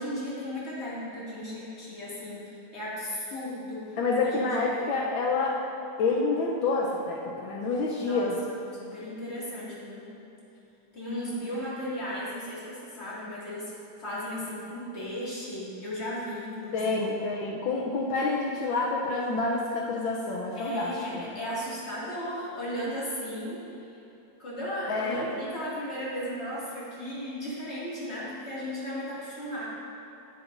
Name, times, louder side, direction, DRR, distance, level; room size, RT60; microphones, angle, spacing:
voice 1, 0.0-4.9 8.0-10.1 10.9-13.7 14.0-17.0 20.6-23.6 24.4-29.7, equal, 35° left, -9 dB, 2.4 m, -36 dB
voice 2, 4.0-5.6 6.0-8.4 16.7-20.9 24.9-25.3, left 3 dB, 80° left, -2 dB, 1.5 m, -28 dB
10.0 x 9.7 x 2.6 m, 2.9 s
omnidirectional pair, 2.1 m